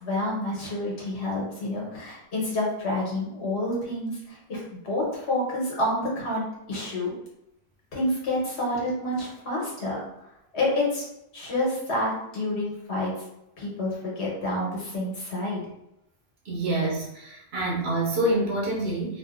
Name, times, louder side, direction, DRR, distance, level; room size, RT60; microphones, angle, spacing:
voice 1, 0.0-7.1 7.9-10.0 10.5-11.1 11.3-13.1 13.6-15.7, left 1 dB, 80° left, -4 dB, 1.2 m, -28 dB
voice 2, 16.4-19.2, right 1 dB, 75° right, -4 dB, 1.0 m, -27 dB
2.6 x 2.5 x 2.3 m, 0.83 s
omnidirectional pair, 1.1 m